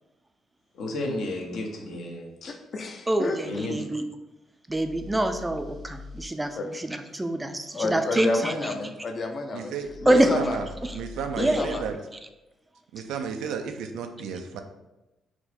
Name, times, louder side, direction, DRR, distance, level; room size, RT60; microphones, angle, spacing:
voice 1, 0.7-2.5 3.4-3.8, left 1 dB, 75° left, 0 dB, 0.9 m, -32 dB
voice 2, 2.5-3.6 6.6-6.7 7.7-9.7 10.0-10.6 11.3-11.8, left 3 dB, 45° left, 5 dB, 0.6 m, -30 dB
voice 3, 3.1-4.0 4.7-8.8 10.1-10.4 11.4-11.8, right 1 dB, 15° right, 7 dB, 0.4 m, -25 dB
sound 1, 4.7-6.3 9.8-11.9, left 3 dB, 65° right, 0.9 m, -43 dB
voice 4, 9.5-10.7 10.9-12.0 12.9-14.6, right 6 dB, 85° right, 6 dB, 0.4 m, -33 dB
4.5 x 2.1 x 4.2 m, 1.0 s
cardioid pair, 90°, 0 cm